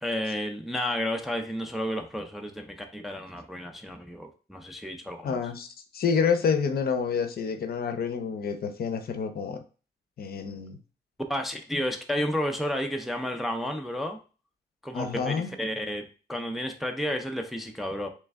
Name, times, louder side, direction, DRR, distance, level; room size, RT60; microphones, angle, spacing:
voice 1, 0.0-5.4 11.3-14.2 14.8-18.1, equal, ahead, 4 dB, 0.4 m, -32 dB
voice 2, 5.2-5.7 5.9-9.6 10.2-10.8 14.9-15.5, left 6 dB, 60° left, 7 dB, 0.6 m, -28 dB
3.3 x 3.2 x 3.5 m, 0.36 s
wide cardioid pair, 135°, 18 cm